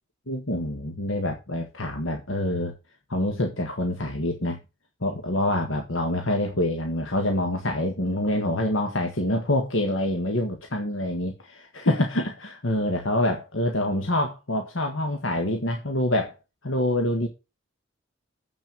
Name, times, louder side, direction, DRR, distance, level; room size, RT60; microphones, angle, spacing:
voice 1, 0.3-2.7 3.1-4.6 5.0-16.4 16.6-17.3, left 1 dB, 75° left, 4 dB, 1.7 m, -26 dB
8.1 x 6.2 x 7.3 m, 0.28 s
head